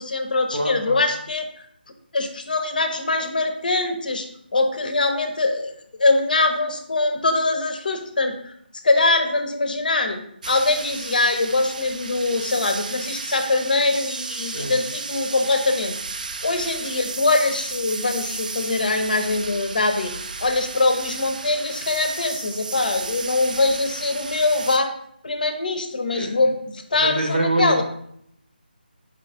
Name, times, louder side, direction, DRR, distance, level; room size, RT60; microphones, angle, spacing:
voice 1, 0.0-1.5 2.1-4.3 4.5-8.5 8.8-15.9 16.4-20.1 20.4-24.9 25.2-27.8, left 3 dB, 55° left, 7 dB, 0.5 m, -23 dB
voice 2, 0.5-1.0 14.5-14.7 26.1-26.3 26.9-27.8, right 1 dB, 80° right, 1 dB, 1.0 m, -24 dB
sound 1, 10.4-24.8, right 4 dB, 50° right, 0.3 m, -33 dB
4.7 x 2.4 x 3.4 m, 0.70 s
figure-of-eight pair, 155°, 6 cm